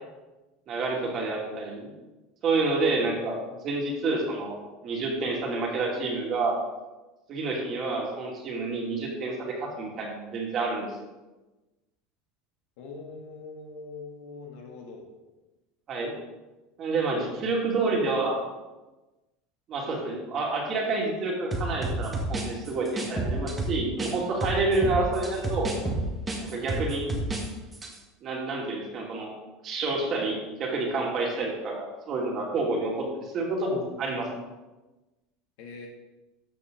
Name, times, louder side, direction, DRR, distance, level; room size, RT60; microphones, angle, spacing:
voice 1, 0.7-1.9 2.4-4.6 4.8-6.6 7.3-11.0 15.9-16.1 16.8-18.4 19.7-25.7 26.4-27.1 28.2-29.3 29.6-34.3, right 3 dB, 30° right, -1 dB, 2.5 m, -28 dB
voice 2, 12.8-15.1 35.6-35.9, left 4 dB, 65° left, 1 dB, 2.4 m, -42 dB
sound 1, 21.5-24.1 24.4-27.5 27.7-27.9, right 2 dB, 10° right, 1.6 m, -30 dB
13.5 x 7.8 x 3.9 m, 1.1 s
supercardioid pair, 165°, 0 cm